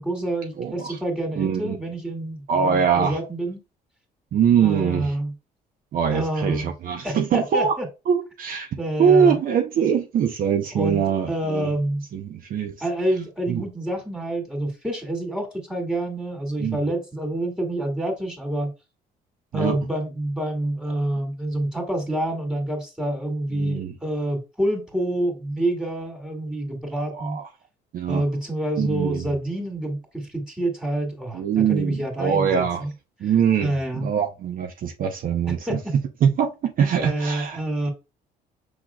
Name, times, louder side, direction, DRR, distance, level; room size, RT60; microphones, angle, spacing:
voice 1, 0.0-3.6 4.6-5.3 6.1-6.7 7.0-7.9 8.8-9.4 10.7-12.0 12.8-18.7 19.5-27.4 28.1-32.9 33.6-34.1 35.7-35.9 37.0-37.9, right 1 dB, 5° right, 2.4 m, -27 dB
voice 2, 0.6-1.0 1.4-1.8 2.5-3.2 4.3-5.2 5.9-7.8 8.1-8.7 9.0-11.7 12.1-12.8 13.5-13.6 16.6-16.8 19.5-19.8 23.5-23.9 27.1-27.5 27.9-28.2 28.8-29.3 31.3-32.9 33.2-35.8 36.2-37.6, right 7 dB, 55° right, 0.8 m, -23 dB
6.4 x 3.6 x 2.3 m
cardioid pair, 110°, 17 cm